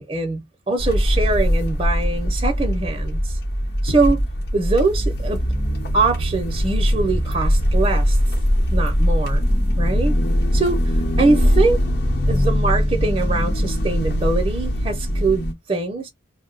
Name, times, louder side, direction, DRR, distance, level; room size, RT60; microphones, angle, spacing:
voice 1, 0.0-3.3 3.8-4.2 4.5-5.5 5.9-8.2 8.7-9.4 9.8-10.2 10.5-11.8 12.3-16.1, right 3 dB, 25° right, 0.6 m, -23 dB
sound 1, 0.8-15.5, equal, 50° left, 0.9 m, -21 dB
2.6 x 2.0 x 3.8 m
head